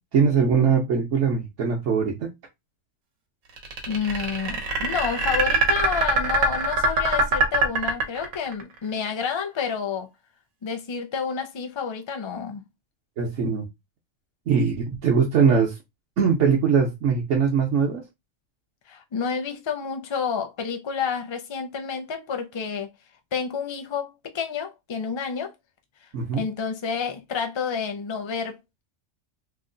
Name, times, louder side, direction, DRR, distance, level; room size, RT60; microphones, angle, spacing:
voice 1, 0.0-2.3 13.2-13.7 14.5-15.8 16.2-18.0 26.1-26.4, right 6 dB, 70° right, 1.1 m, -21 dB
sound 1, 3.6-8.6, right 2 dB, 90° right, 1.3 m, -22 dB
voice 2, 3.9-10.1 10.6-12.6 18.9-22.9 23.3-25.5 26.3-28.8, left 6 dB, 35° left, 0.4 m, -29 dB
3.0 x 2.2 x 3.7 m
omnidirectional pair, 1.3 m